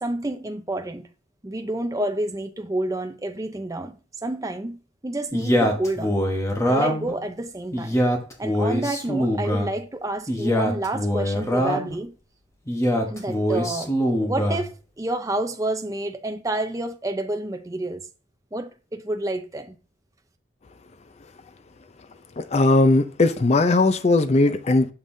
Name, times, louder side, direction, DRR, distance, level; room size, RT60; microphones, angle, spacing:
voice 1, 0.0-1.0 1.4-4.0 4.2-6.2 6.6-8.0 8.4-12.1 13.1-13.9 14.2-18.0 18.5-19.8, right 1 dB, 15° right, 0.5 m, -29 dB
Male speech man speaking, 5.3-7.1 7.7-9.7 10.3-12.0 12.7-14.7, equal, 15° left, 1.0 m, -23 dB
voice 2, 22.4-24.9, left 2 dB, 35° left, 0.4 m, -18 dB
6.5 x 5.4 x 2.6 m
head